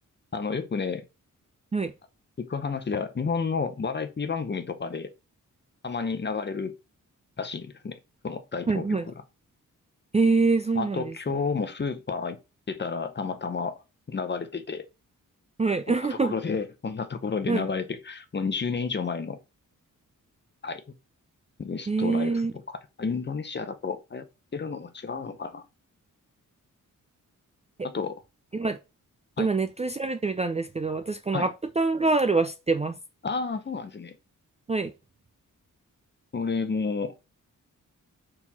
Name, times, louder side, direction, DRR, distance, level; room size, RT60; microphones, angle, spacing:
voice 1, 0.3-1.0 2.4-5.1 5.8-6.7 7.4-8.0 8.2-9.1 10.7-12.4 12.7-13.8 14.1-14.9 16.2-19.4 20.6-20.8 21.6-22.4 22.7-24.3 24.5-25.6 27.8-28.2 29.4-29.5 31.3-31.5 33.2-34.2 36.3-37.1, left 5 dB, 35° left, 0.9 m, -31 dB
voice 2, 8.7-9.1 10.1-11.1 15.6-16.3 17.5-17.6 21.9-22.5 27.8-27.9 28.5-28.8 29.4-33.0 34.7-34.9, right 3 dB, 20° right, 0.4 m, -25 dB
4.4 x 4.3 x 5.6 m
wide cardioid pair, 155°, 32 cm